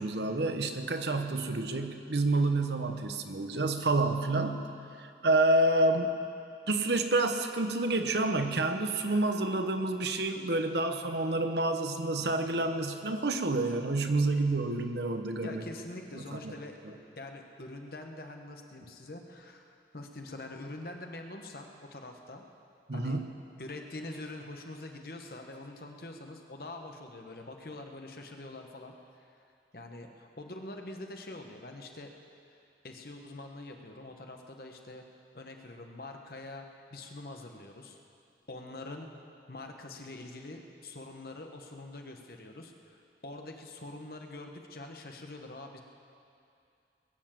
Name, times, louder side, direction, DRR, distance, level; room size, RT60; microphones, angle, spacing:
voice 1, 0.0-4.7 5.0-6.2 6.7-15.6 16.2-16.5 22.9-23.2, right 2 dB, 70° right, 6 dB, 1.0 m, -28 dB
voice 2, 15.4-16.8 17.2-22.4 22.9-23.2 23.6-29.3 29.7-32.1 32.8-35.0 35.3-36.6 36.9-38.0 38.5-39.1 39.5-45.8, left 2 dB, 55° left, 3 dB, 1.3 m, -44 dB
21.5 x 7.2 x 7.5 m, 2.6 s
head